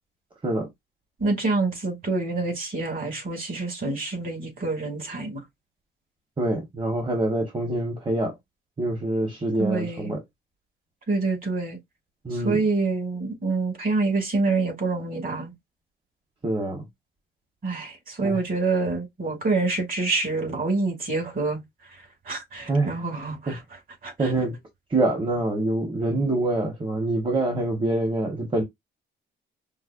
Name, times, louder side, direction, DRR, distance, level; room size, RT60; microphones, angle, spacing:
voice 1, 1.2-5.4 9.6-10.1 11.1-11.8 12.3-15.5 17.6-21.6 22.2-23.6 24.0-24.3, right 3 dB, 45° right, 2.6 m, -26 dB
voice 2, 6.4-8.4 8.8-10.2 12.2-12.6 16.4-16.9 18.2-18.4 22.7-23.0 23.5-23.6 24.2-24.6 24.9-28.6, right 2 dB, 25° right, 1.3 m, -25 dB
5.2 x 2.2 x 2.5 m
cardioid pair, 90°, 20 cm